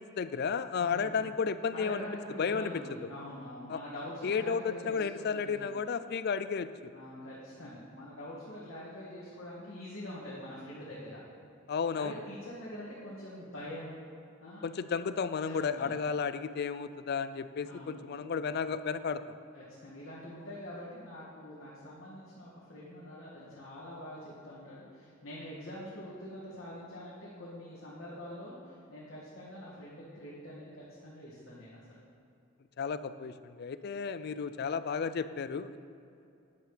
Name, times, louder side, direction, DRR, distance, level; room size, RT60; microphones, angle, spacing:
voice 1, 0.0-2.1 2.4-2.7 3.7-3.8 4.2-6.9 11.7-12.1 14.6-19.2 32.8-35.8, left 6 dB, 50° left, 13 dB, 0.4 m, -33 dB
voice 2, 0.8-1.2 1.7-5.7 6.9-11.2 11.9-14.0 14.4-15.0 15.4-15.9 17.6-18.0 19.5-32.0, left 1 dB, 85° left, -8 dB, 2.0 m, -45 dB
11.0 x 9.6 x 3.3 m, 2.5 s
head